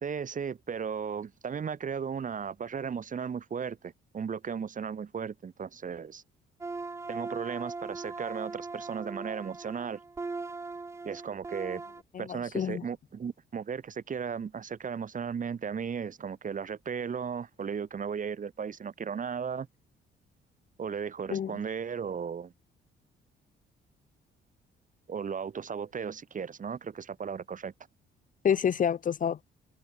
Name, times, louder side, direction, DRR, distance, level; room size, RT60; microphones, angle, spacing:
voice 1, 0.0-6.2 7.1-10.0 11.1-11.8 12.2-19.7 20.8-22.5 25.1-27.7, right 6 dB, 40° right, 1.6 m, -35 dB
sound 1, 6.6-12.0, right 3 dB, 15° right, 0.4 m, -39 dB
voice 2, 12.1-12.8 21.3-21.5 28.4-29.4, left 8 dB, 40° left, 0.6 m, -28 dB
cardioid pair, 90°, 20 cm